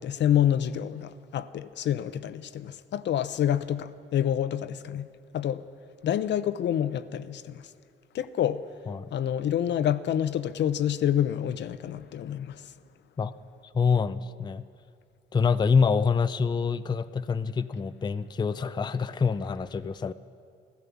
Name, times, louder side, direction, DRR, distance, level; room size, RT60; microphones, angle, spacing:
voice 1, 0.0-5.6 6.0-7.7 8.1-8.6 9.1-12.7, left 10 dB, 65° left, 0.6 m, -28 dB
voice 2, 13.7-14.6 15.3-20.1, left 5 dB, 20° left, 0.4 m, -26 dB
15.0 x 12.5 x 7.0 m
cardioid pair, 90°, 20 cm